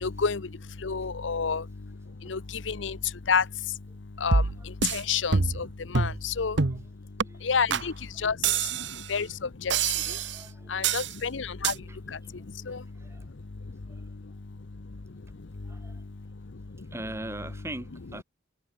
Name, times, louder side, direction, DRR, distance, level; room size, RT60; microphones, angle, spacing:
voice 1, 0.0-7.9 8.2-10.2 10.5-16.9, left 6 dB, 90° left, 0.8 m, -32 dB
sound 1, 4.3-5.0 5.3-5.7 5.9-6.2 6.6-6.8 7.2-7.3 7.7-7.9 8.4-9.1 9.7-10.4 10.8-11.1 11.6-11.8, right 5 dB, 70° right, 1.1 m, -26 dB
voice 2, 7.2-7.8 8.1-8.3 10.0-11.1 11.7-12.3 12.7-13.3 13.9-14.0 15.6-16.0 16.9-18.2, right 1 dB, 15° right, 2.0 m, -42 dB
head